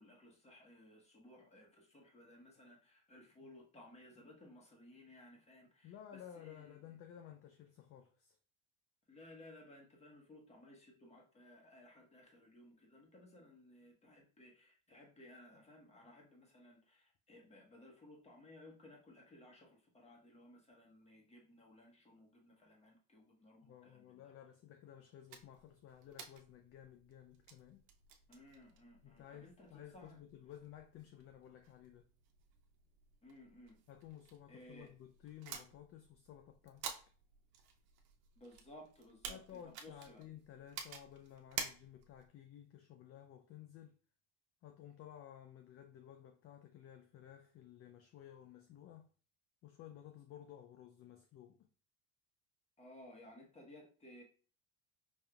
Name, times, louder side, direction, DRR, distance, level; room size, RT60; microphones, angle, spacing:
voice 1, 0.0-6.7 9.1-24.2 28.3-30.2 33.2-33.8 34.5-34.9 38.4-39.4 39.6-40.2 52.8-54.2, left 1 dB, 15° left, 1.3 m, -59 dB
voice 2, 5.8-8.4 23.6-27.8 29.0-32.1 33.9-36.8 39.3-43.9 44.6-49.1 49.6-51.7, left 10 dB, 40° left, 0.4 m, -55 dB
sound 1, 25.3-42.3, right 7 dB, 65° right, 0.8 m, -52 dB
5.2 x 2.7 x 2.3 m
supercardioid pair, 120°, 39 cm